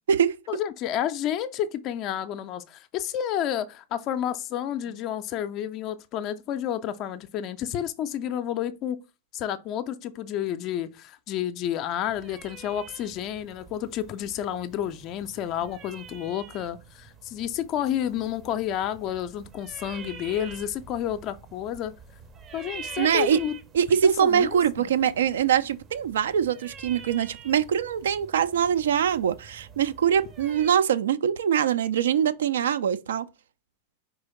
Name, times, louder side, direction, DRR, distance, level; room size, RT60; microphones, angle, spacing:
voice 1, 0.5-9.0 9.3-21.9 22.5-23.5 24.0-24.9, left 10 dB, 40° left, 0.4 m, -30 dB
sound 1, 12.1-30.7, right 6 dB, 25° right, 0.6 m, -46 dB
voice 2, 23.0-23.4 23.7-33.3, right 8 dB, 65° right, 0.3 m, -23 dB
4.7 x 3.8 x 3.0 m
figure-of-eight pair, 90°, 0 cm